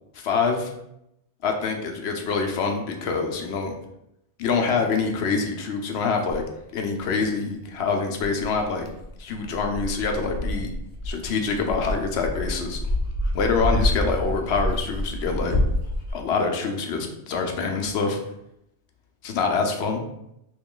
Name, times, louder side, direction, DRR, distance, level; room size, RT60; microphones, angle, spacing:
voice 1, 0.1-0.7 1.4-3.7 4.4-6.4 6.7-8.9 9.2-10.7 11.0-12.8 13.3-15.5 16.1-18.2 19.2-20.0, left 4 dB, 70° left, 3 dB, 0.8 m, -25 dB
Dog, 6.3-6.4 7.2-7.3 8.2-16.1, left 1 dB, 40° left, 0.7 m, -27 dB
3.1 x 2.9 x 3.7 m, 0.81 s
omnidirectional pair, 1.2 m